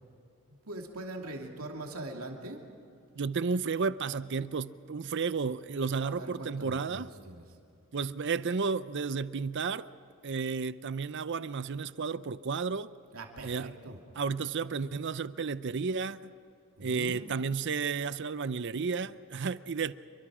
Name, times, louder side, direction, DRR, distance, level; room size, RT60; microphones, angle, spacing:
voice 1, 0.7-2.6 6.0-7.4 13.1-14.0 16.8-17.3, right 1 dB, 80° right, 2.7 m, -42 dB
voice 2, 3.2-7.1 7.9-9.9 10.2-12.9 13.4-13.7 14.2-16.3 16.8-19.9, right 5 dB, 55° right, 0.6 m, -32 dB
29.0 x 23.5 x 5.0 m
head